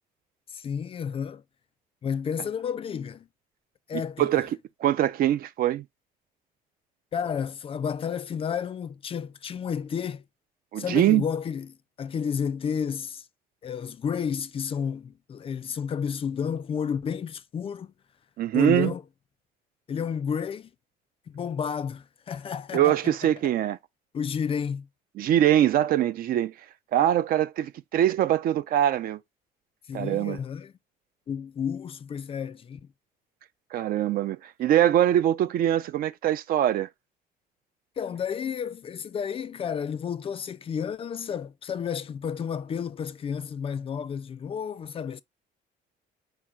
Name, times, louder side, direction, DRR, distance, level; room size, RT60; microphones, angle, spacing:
voice 1, 0.5-1.4 2.0-3.3 3.9-4.5 7.1-10.2 10.8-13.2 13.6-17.9 18.5-19.0 19.9-20.7 21.3-23.0 24.1-24.9 29.9-30.7 31.3-32.8 38.0-45.2, left 7 dB, 35° left, 0.4 m, -31 dB
voice 2, 4.2-4.5 4.8-5.8 10.7-11.2 18.4-18.9 22.7-23.8 25.2-26.5 26.9-29.2 29.9-30.4 33.7-36.9, right 11 dB, 60° right, 0.4 m, -23 dB
4.6 x 4.3 x 2.4 m
cardioid pair, 110°, 17 cm